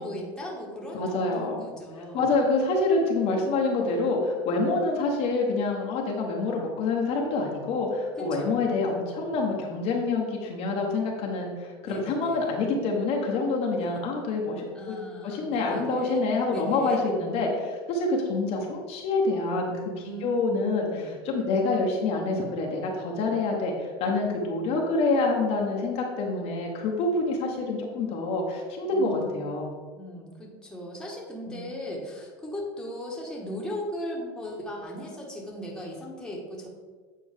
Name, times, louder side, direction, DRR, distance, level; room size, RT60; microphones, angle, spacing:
voice 1, 0.0-2.3 8.1-8.5 11.8-12.4 13.8-14.0 14.7-17.0 19.9-21.2 28.9-29.3 29.9-36.7, equal, 5° left, -3 dB, 1.6 m, -38 dB
voice 2, 0.9-1.7 2.1-15.0 15.2-19.7 20.2-20.9 21.2-29.7 31.5-31.7, left 3 dB, 50° left, 0 dB, 1.3 m, -27 dB
8.7 x 4.2 x 3.6 m, 1.5 s
supercardioid pair, 115°, 13 cm